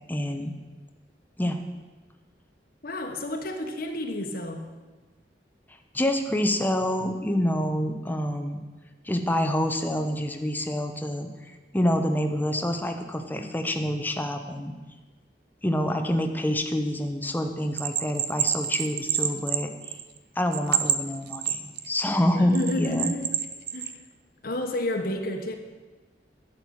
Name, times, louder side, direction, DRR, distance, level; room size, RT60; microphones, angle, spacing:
voice 1, 0.1-0.5 1.4-1.6 5.9-8.6 9.0-11.3 11.7-14.7 15.6-19.7 20.3-23.1, left 1 dB, 10° left, 5 dB, 1.0 m, -27 dB
voice 2, 2.8-4.7 22.4-23.3 23.7-23.9 24.4-25.5, left 1 dB, 55° left, 4 dB, 1.3 m, -30 dB
Bell, 17.8-20.2 20.5-22.0 22.5-23.9, right 10 dB, 65° right, 0.8 m, -27 dB
11.5 x 6.8 x 9.6 m, 1.3 s
head